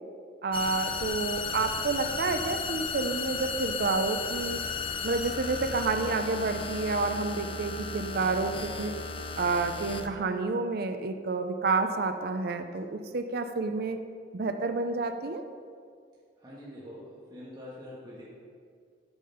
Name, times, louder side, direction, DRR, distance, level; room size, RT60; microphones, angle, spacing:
voice 1, 0.4-4.6 5.0-8.9 9.4-14.0 14.3-15.4, right 3 dB, 60° right, 7 dB, 0.5 m, -29 dB
sound 1, 0.5-10.1, left 5 dB, 30° left, 0.5 m, -35 dB
voice 2, 16.4-18.3, left 1 dB, 25° right, -7 dB, 1.4 m, -45 dB
8.7 x 6.7 x 5.6 m, 2.1 s
head